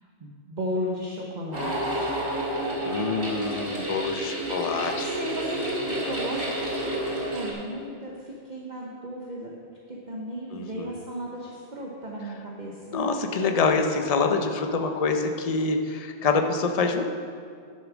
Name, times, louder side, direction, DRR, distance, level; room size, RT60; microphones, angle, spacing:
voice 1, 0.0-2.1 4.7-6.5 7.3-9.5 9.9-13.0, equal, 40° right, -2 dB, 1.1 m, -35 dB
sound 1, 1.5-7.5, right 1 dB, 75° right, 2.7 m, -30 dB
voice 2, 2.8-5.1 10.5-10.9 12.9-17.0, left 4 dB, 40° left, 5 dB, 0.7 m, -26 dB
10.5 x 7.3 x 6.1 m, 2.2 s
omnidirectional pair, 1.2 m